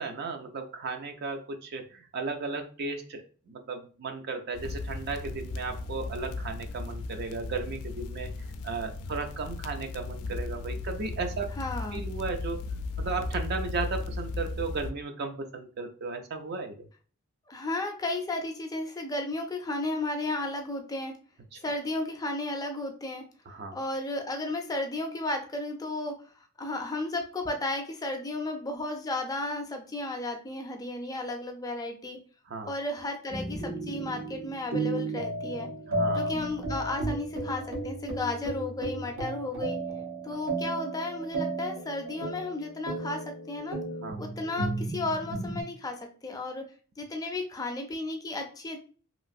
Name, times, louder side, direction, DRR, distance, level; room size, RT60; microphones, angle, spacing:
voice 1, 0.0-8.3 8.6-11.5 11.9-12.6 13.0-16.7 21.5-21.6 23.5-23.8 32.5-32.7 35.9-36.3 44.0-44.2, right 4 dB, 50° right, 6 dB, 0.4 m, -35 dB
sound 1, 4.5-14.9, left 3 dB, 90° left, 0.3 m, -36 dB
voice 2, 11.6-12.0 17.5-21.1 21.6-23.2 23.7-26.2 26.6-32.2 32.7-35.7 36.1-39.8 40.2-43.2 43.5-43.8 44.2-46.6 47.0-48.8, left 2 dB, 15° left, 4 dB, 0.4 m, -33 dB
sound 2, 33.3-45.6, right 2 dB, 85° right, 1.1 m, -34 dB
3.0 x 2.4 x 2.6 m, 0.39 s
head